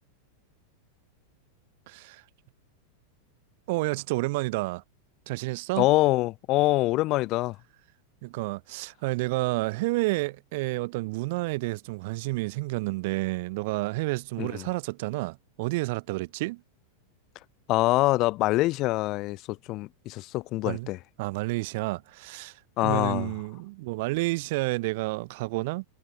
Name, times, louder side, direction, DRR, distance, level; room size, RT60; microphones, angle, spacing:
voice 1, 1.9-2.2 3.7-4.8 5.3-5.9 8.2-16.6 20.6-20.9 21.2-25.8, right 23 dB, 50° right, 0.3 m, -30 dB
voice 2, 5.8-7.6 14.4-14.7 17.7-21.0 22.8-23.3, left 19 dB, 40° left, 0.3 m, -25 dB
figure-of-eight pair, 90°, 0 cm